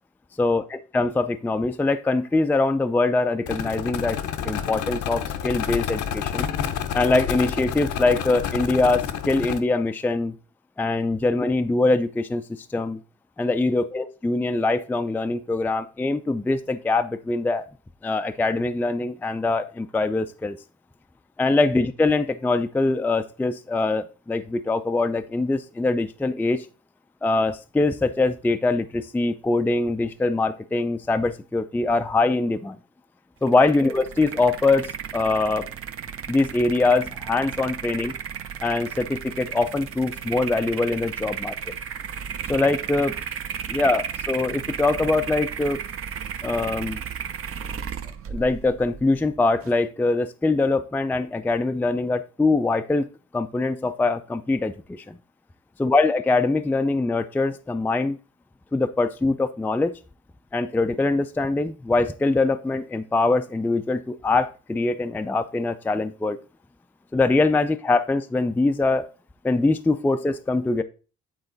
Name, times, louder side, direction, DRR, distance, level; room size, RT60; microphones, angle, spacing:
voice 1, 0.4-4.2 4.4-6.5 6.9-10.3 10.8-12.4 12.7-13.0 13.4-17.7 18.0-20.6 21.4-26.7 27.2-32.8 33.4-35.7 36.3-38.1 38.6-41.7 42.5-43.1 43.7-45.8 46.4-47.0 48.3-53.0 53.3-55.2 55.8-58.2 58.7-59.9 60.5-66.4 67.1-69.1 69.4-70.8, left 3 dB, 5° left, 9 dB, 0.4 m, -23 dB
sound 1, 3.5-9.6, left 8 dB, 75° left, 0.8 m, -29 dB
sound 2, 33.4-49.8, right 8 dB, 50° right, 0.7 m, -34 dB
8.7 x 3.9 x 3.9 m, 0.34 s
cardioid pair, 90°, 30 cm